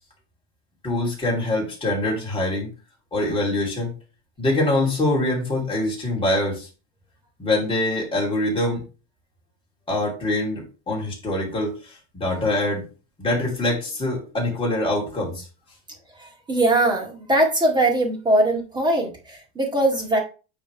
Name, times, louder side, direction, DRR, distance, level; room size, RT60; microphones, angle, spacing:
voice 1, 0.8-2.7 3.1-3.9 4.4-6.7 7.4-8.8 9.9-12.8 13.2-15.4, left 1 dB, 15° left, -3 dB, 2.8 m, -24 dB
voice 2, 16.2-20.2, right 1 dB, 15° right, 0 dB, 2.0 m, -21 dB
8.9 x 3.5 x 4.6 m, 0.32 s
cardioid pair, 165°, 32 cm